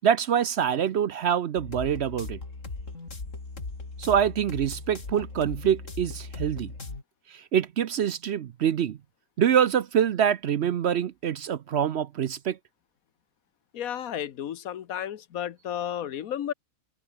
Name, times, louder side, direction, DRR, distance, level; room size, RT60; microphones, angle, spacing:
voice 1, 0.0-2.4 4.0-6.7 7.3-9.0 9.4-12.6, right 9 dB, 60° right, 0.8 m, -25 dB
sound 1, 1.6-7.0, left 3 dB, 60° left, 3.7 m, -38 dB
voice 2, 13.7-16.5, left 10 dB, 80° left, 1.4 m, -33 dB
open air
omnidirectional pair, 1.5 m